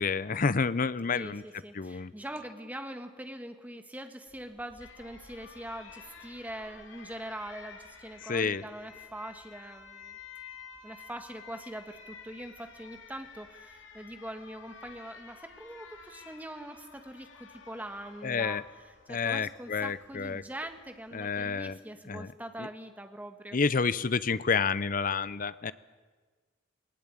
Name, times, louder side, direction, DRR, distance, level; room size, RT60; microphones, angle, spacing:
voice 1, 0.0-1.4 1.7-2.1 8.3-8.6 18.2-18.6 19.1-20.4 21.1-21.8 22.1-22.3 22.6-22.7 23.5-25.7, left 5 dB, 45° left, 17 dB, 0.6 m, -29 dB
voice 2, 1.1-10.2 10.8-23.6, right 1 dB, 10° right, 7 dB, 1.4 m, -43 dB
Alarm, 4.3-21.5, left 5 dB, 70° left, 2.4 m, -52 dB
19.5 x 19.0 x 9.0 m, 1.4 s
head